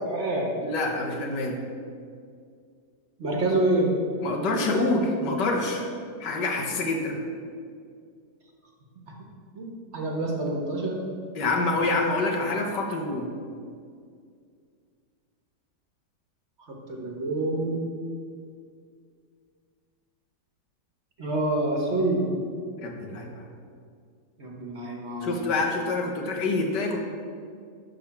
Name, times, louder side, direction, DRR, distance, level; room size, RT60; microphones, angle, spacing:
voice 1, 0.0-0.6 3.2-4.0 9.5-11.0 16.9-17.8 21.2-22.3 24.4-25.5, right 2 dB, 45° right, 0 dB, 1.4 m, -27 dB
voice 2, 0.6-1.6 4.2-5.9 6.2-7.2 11.4-13.3 22.8-23.5 25.2-27.0, left 2 dB, 80° left, 2 dB, 1.8 m, -26 dB
11.5 x 3.9 x 7.0 m, 2.2 s
omnidirectional pair, 1.8 m